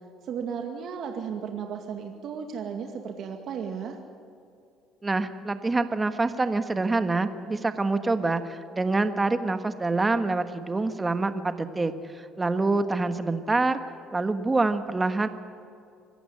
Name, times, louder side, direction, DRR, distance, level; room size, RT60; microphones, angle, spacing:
voice 1, 0.2-4.0, right 7 dB, 60° right, 4 dB, 2.1 m, -34 dB
voice 2, 5.0-13.8 14.1-15.3, right 3 dB, 20° right, 9 dB, 1.4 m, -26 dB
25.5 x 15.0 x 9.8 m, 2.5 s
supercardioid pair, 90°, 0 cm